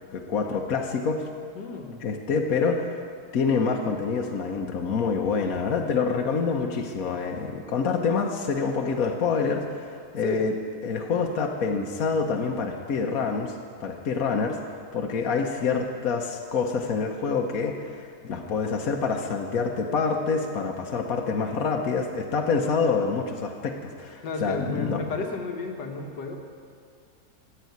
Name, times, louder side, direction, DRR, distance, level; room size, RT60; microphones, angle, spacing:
voice 1, 0.1-1.2 2.0-2.9 3.3-10.5 10.8-13.5 13.8-14.6 14.9-25.0, left 5 dB, 60° left, 1 dB, 1.4 m, -26 dB
voice 2, 1.6-2.0 10.2-10.5 24.2-26.4, left 3 dB, 90° left, 3 dB, 2.0 m, -32 dB
14.5 x 8.3 x 9.5 m, 2.3 s
omnidirectional pair, 1.8 m